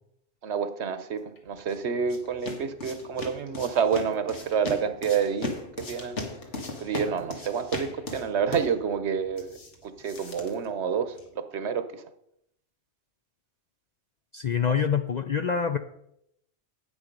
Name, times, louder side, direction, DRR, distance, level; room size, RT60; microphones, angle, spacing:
voice 1, 0.4-6.2 6.8-9.6 9.8-12.0 14.7-14.8, right 6 dB, 70° right, 10 dB, 1.1 m, -28 dB
sound 1, 1.4-11.4, left 2 dB, 70° left, 2.0 m, -39 dB
voice 2, 14.3-15.8, left 7 dB, 55° left, 8 dB, 0.5 m, -26 dB
9.8 x 8.6 x 5.3 m, 0.77 s
omnidirectional pair, 1.2 m